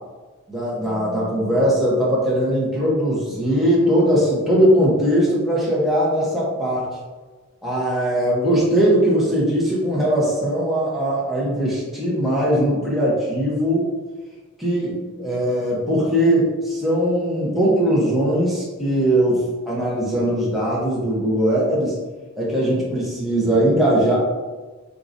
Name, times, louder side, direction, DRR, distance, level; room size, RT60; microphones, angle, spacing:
voice 1, 0.5-6.9 7.6-13.9 14.6-22.0 22.4-24.2, equal, ahead, -7 dB, 0.9 m, -20 dB
4.7 x 3.8 x 2.6 m, 1.3 s
head